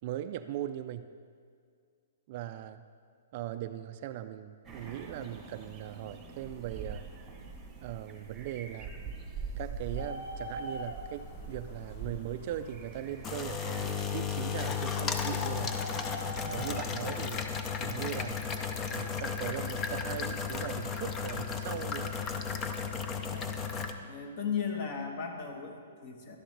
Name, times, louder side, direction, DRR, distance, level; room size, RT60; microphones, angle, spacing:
voice 1, 0.0-1.1 2.3-2.8 3.3-7.1 7.8-9.0 9.6-15.8 16.5-17.5 17.8-18.4 18.9-22.2, right 12 dB, 40° right, 10 dB, 0.3 m, -39 dB
sound 1, 4.6-14.0, right 4 dB, 10° right, 1.1 m, -44 dB
Bird, 9.8-21.0, equal, 55° left, 1.3 m, -47 dB
sound 2, 11.3-23.9, left 6 dB, 15° left, 0.5 m, -35 dB
voice 2, 23.2-23.5 24.0-26.4, left 6 dB, 35° left, 4 dB, 1.2 m, -36 dB
11.5 x 11.5 x 3.3 m, 2.2 s
hypercardioid pair, 165°, 0 cm